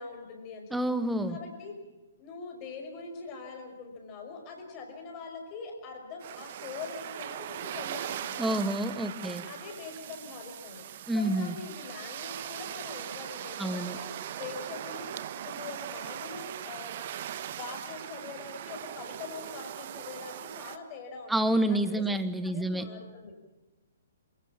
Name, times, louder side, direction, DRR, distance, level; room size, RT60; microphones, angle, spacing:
voice 1, 0.0-0.8 1.3-1.7 2.2-8.6 9.2-10.9 11.1-16.9 17.4-22.0 22.4-23.3, left 4 dB, 30° left, 3 dB, 5.7 m, -43 dB
voice 2, 0.7-1.4 8.4-9.4 11.1-11.5 13.6-14.0 21.3-22.9, right 1 dB, 5° right, 11 dB, 1.4 m, -28 dB
sound 1, 6.2-20.8, right 11 dB, 45° right, 1.2 m, -40 dB
28.0 x 17.5 x 7.3 m, 1.1 s
figure-of-eight pair, 120°, 0 cm